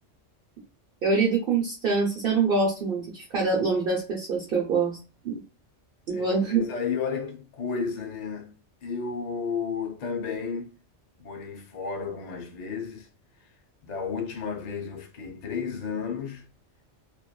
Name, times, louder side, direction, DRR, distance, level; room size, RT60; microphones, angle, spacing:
voice 1, 1.0-5.0 5.2-5.4 6.1-6.6, right 4 dB, 55° right, 0.8 m, -25 dB
voice 2, 6.1-8.5 8.8-10.7 11.2-13.1 13.4-13.5 13.8-16.5, left 5 dB, 55° left, 0.5 m, -32 dB
2.9 x 2.4 x 2.2 m
omnidirectional pair, 1.2 m